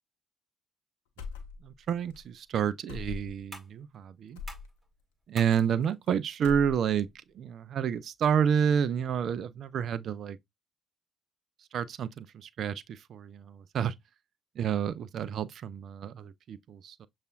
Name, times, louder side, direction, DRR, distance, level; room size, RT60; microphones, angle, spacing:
sound 1, 1.2-2.2 2.9-3.5 4.4-4.7 5.5-6.1 6.3-7.1, left 4 dB, 75° left, 0.6 m, -41 dB
voice 1, 1.6-4.4 5.3-7.1 7.3-10.4 11.7-13.9 14.6-17.1, right 8 dB, 55° right, 0.3 m, -29 dB
sound 2, 2.1-9.0, right 1 dB, 15° right, 2.1 m, -55 dB
6.6 x 2.4 x 2.3 m
figure-of-eight pair, 45°, 0 cm